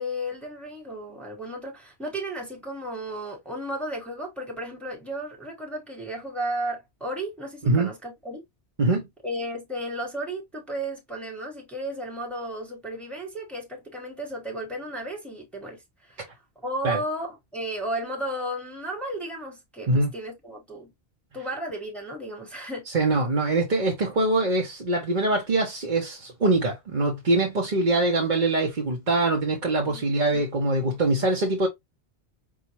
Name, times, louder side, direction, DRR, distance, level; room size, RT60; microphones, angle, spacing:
voice 1, 0.0-8.4 9.2-16.3 16.6-20.9 21.3-22.9 29.8-30.0 30.3-30.4, right 1 dB, ahead, 1.2 m, -34 dB
voice 2, 22.9-31.7, right 2 dB, 45° right, 1.1 m, -23 dB
5.5 x 2.4 x 3.0 m
omnidirectional pair, 1.1 m